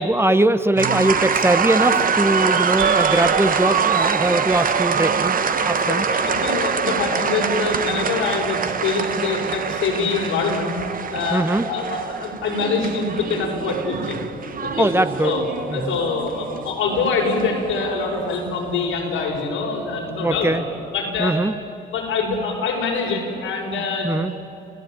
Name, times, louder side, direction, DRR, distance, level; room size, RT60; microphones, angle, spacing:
voice 1, 0.0-5.4 5.7-6.1 11.3-11.7 14.8-15.3 15.7-15.9 20.2-20.6 21.2-21.5 24.0-24.3, right 1 dB, 10° right, 11 dB, 0.9 m, -21 dB
eerie background, 0.7-1.8 2.3-5.7, right 8 dB, 80° right, 1.2 m, -30 dB
sound 1, 0.8-18.4, right 6 dB, 45° right, 1.3 m, -24 dB
voice 2, 5.9-10.8 11.1-14.2 14.6-14.9 15.2-15.5 15.7-20.5 20.9-21.4 21.9-24.2, left 4 dB, 90° left, -1 dB, 6.0 m, -24 dB
29.5 x 16.0 x 8.9 m, 2.7 s
cardioid pair, 90°, 20 cm